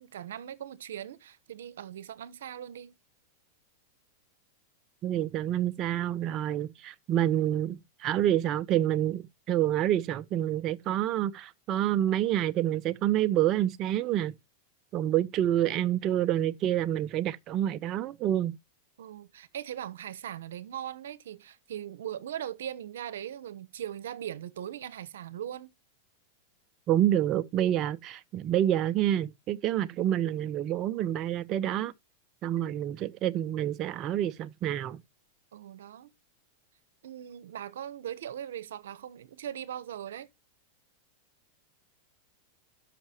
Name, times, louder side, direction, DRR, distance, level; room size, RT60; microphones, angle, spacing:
voice 1, 0.0-2.9 19.0-25.7 35.5-36.1 37.0-40.3, right 10 dB, 80° right, 0.9 m, -40 dB
voice 2, 5.0-14.3 14.9-18.5 26.9-31.9 32.4-35.0, right 12 dB, 40° right, 0.6 m, -28 dB
12.0 x 5.8 x 2.9 m
hypercardioid pair, 120°, 0 cm